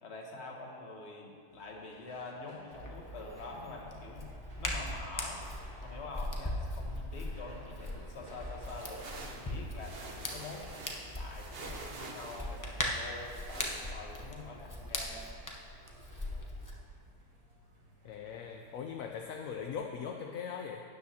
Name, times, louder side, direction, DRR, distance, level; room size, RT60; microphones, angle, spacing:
voice 1, 0.0-4.3 4.6-5.4 5.8-10.0 10.3-15.3, left 3 dB, 45° left, 0 dB, 1.4 m, -46 dB
sound 1, 1.5-19.8, right 1 dB, 65° right, 1.9 m, -61 dB
Hands, 2.7-16.7, left 1 dB, 20° left, 0.6 m, -40 dB
sound 2, 8.6-13.9, right 3 dB, 45° right, 0.9 m, -47 dB
voice 2, 18.0-20.8, left 7 dB, 65° left, 2 dB, 0.9 m, -40 dB
12.5 x 9.6 x 2.8 m, 2.4 s
omnidirectional pair, 1.8 m